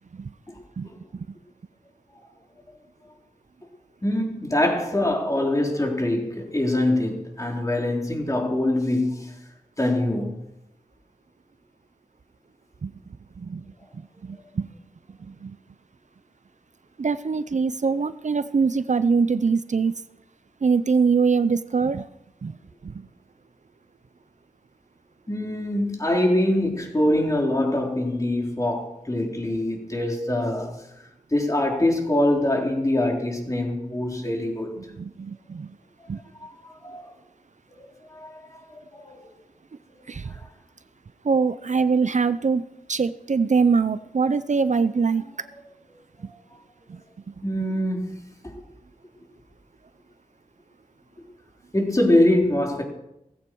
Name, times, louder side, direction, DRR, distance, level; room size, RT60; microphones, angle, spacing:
voice 1, 0.8-1.3 12.8-12.9 13.4-13.7 14.2-14.7 15.3-15.6 17.0-19.9 20.6-22.1 22.4-22.6 22.8-23.1 35.0-35.8 36.1-36.2 40.1-40.3 41.2-42.6 42.9-45.3 46.9-47.0 47.3-47.4, right 5 dB, 60° right, 0.6 m, -23 dB
voice 2, 4.0-9.3 9.8-10.4 25.3-30.8 31.3-34.7 36.4-37.1 38.1-38.6 38.9-39.3 47.4-48.6 51.7-52.8, left 1 dB, 25° left, 4.0 m, -24 dB
18.0 x 15.5 x 4.7 m
wide cardioid pair, 85°, 14 cm